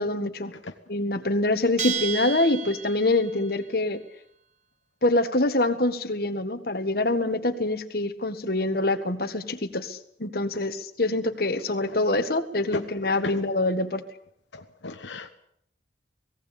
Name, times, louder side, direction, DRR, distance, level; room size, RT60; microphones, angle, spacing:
voice 1, 0.0-0.5 0.9-4.0 5.0-14.0, left 2 dB, 55° left, 8 dB, 1.7 m, -25 dB
Bell, 1.8-3.4, right 7 dB, 40° right, 1.2 m, -32 dB
voice 2, 12.7-13.3 14.5-15.3, left 3 dB, 80° left, 6 dB, 1.2 m, -36 dB
18.0 x 17.5 x 8.6 m, 0.70 s
head